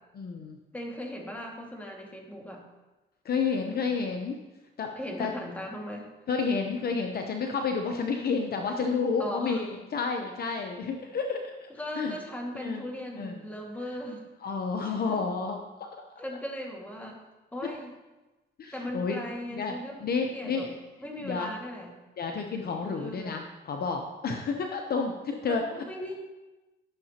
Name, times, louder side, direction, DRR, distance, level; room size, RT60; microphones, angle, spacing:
voice 1, 0.2-0.6 3.2-4.4 4.8-5.3 6.3-11.7 12.0-12.2 12.5-12.8 13.2-13.3 14.4-15.9 18.6-19.2 19.5-20.8 21.2-21.5 22.2-25.6, left 5 dB, 50° left, 4 dB, 0.8 m, -30 dB
voice 2, 0.7-2.6 5.0-6.1 9.2-9.7 10.6-10.7 11.8-14.2 14.8-15.2 16.2-17.2 17.5-17.9 18.7-20.0 20.3-20.7 21.0-21.9 22.9-23.4 25.4-26.2, left 1 dB, 10° left, -1 dB, 2.0 m, -38 dB
12.0 x 6.6 x 2.9 m, 1.1 s
cardioid pair, 90°, 20 cm